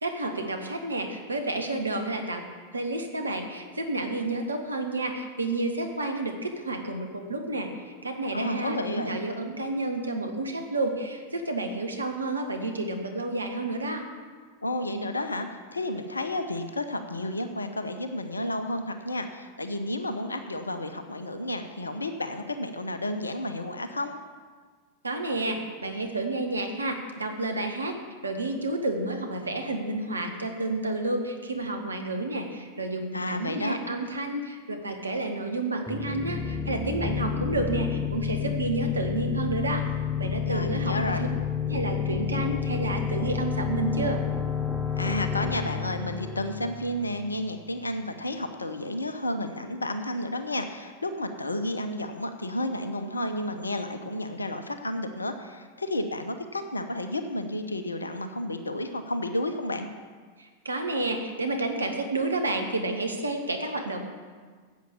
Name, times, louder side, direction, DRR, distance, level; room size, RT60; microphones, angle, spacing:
voice 1, 0.0-2.4 2.7-14.1 25.0-27.9 28.2-39.9 40.2-41.1 41.6-44.2 60.4-64.0, right 2 dB, 80° right, 5 dB, 1.3 m, -30 dB
voice 2, 8.3-9.2 14.6-24.1 33.1-33.8 40.4-41.3 45.0-59.9, left 1 dB, 80° left, 8 dB, 0.8 m, -31 dB
sound 1, 35.9-47.4, left 7 dB, ahead, 0.7 m, -30 dB
10.5 x 8.2 x 7.1 m, 1.5 s
figure-of-eight pair, 90°, 0 cm